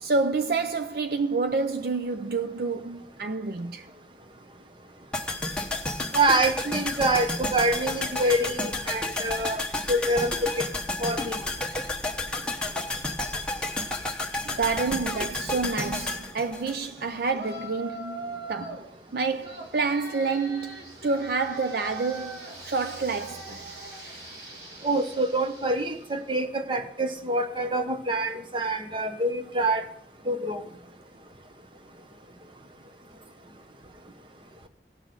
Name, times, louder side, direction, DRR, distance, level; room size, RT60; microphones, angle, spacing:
voice 1, 0.0-3.9 14.4-23.7, right 4 dB, 55° right, 0.4 m, -28 dB
sound 1, 5.1-17.3 17.6-17.7, left 2 dB, 5° left, 1.0 m, -31 dB
voice 2, 6.1-10.7 11.0-11.4 24.8-29.8 30.3-30.6, right 1 dB, 30° right, 0.9 m, -26 dB
Yell, 17.3-18.9 19.4-26.1, right 1 dB, 70° right, 3.1 m, -41 dB
18.0 x 6.1 x 3.8 m
head